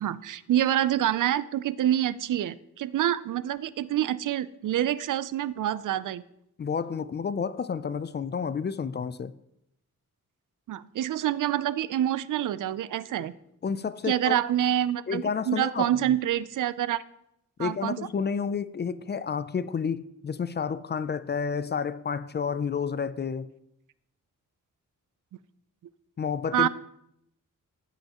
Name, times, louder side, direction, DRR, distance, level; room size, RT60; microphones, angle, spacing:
voice 1, 0.0-6.2 10.7-13.3 14.1-17.0 17.6-18.0 26.5-26.7, right 11 dB, 70° right, 0.5 m, -27 dB
voice 2, 6.6-9.3 13.6-14.4 15.1-16.1 17.6-23.5 26.2-26.7, left 6 dB, 35° left, 0.4 m, -30 dB
14.5 x 5.6 x 2.9 m
wide cardioid pair, 110°, 32 cm